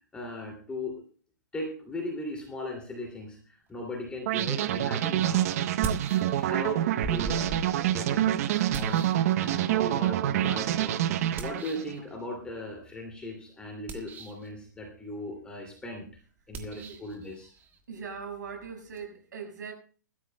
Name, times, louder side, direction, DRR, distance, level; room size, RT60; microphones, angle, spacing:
voice 1, 0.1-1.0 1.5-5.5 6.3-9.0 9.4-16.0 16.5-17.5, left 1 dB, 10° left, 2.5 m, -38 dB
sound 1, 4.3-11.9, right 12 dB, 50° right, 0.8 m, -27 dB
sound 2, 4.7-4.8 5.6-6.7 7.0-9.9 11.4-12.0 13.7-14.5 16.5-19.1, right 3 dB, 20° right, 1.5 m, -40 dB
voice 2, 17.9-19.7, right 6 dB, 75° right, 5.3 m, -40 dB
21.5 x 13.0 x 2.2 m
hypercardioid pair, 140°, 10 cm